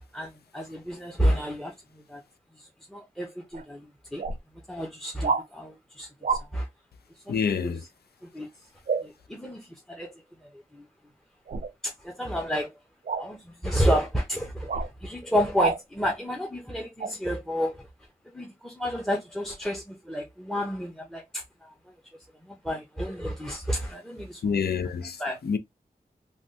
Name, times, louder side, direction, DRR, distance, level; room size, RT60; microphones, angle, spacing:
voice 1, 0.1-1.7 2.1-2.2 2.9-4.2 4.7-6.7 7.3-7.4 8.2-8.5 9.0-10.1 10.7-10.8 11.8-12.7 13.2-13.4 13.6-17.8 18.3-21.7 22.4-24.4 25.2-25.4, equal, 5° left, 0.7 m, -30 dB
sound 1, 3.5-3.6 4.2-4.4 5.2-5.4 6.2-6.4 8.9-9.1 11.5-11.7 13.0-13.3 14.7-14.9 15.6-15.8 17.0-17.1, right 5 dB, 55° right, 0.4 m, -27 dB
voice 2, 7.3-7.8 24.4-25.6, left 6 dB, 85° left, 0.5 m, -27 dB
3.2 x 2.3 x 2.7 m
wide cardioid pair, 65°, 16 cm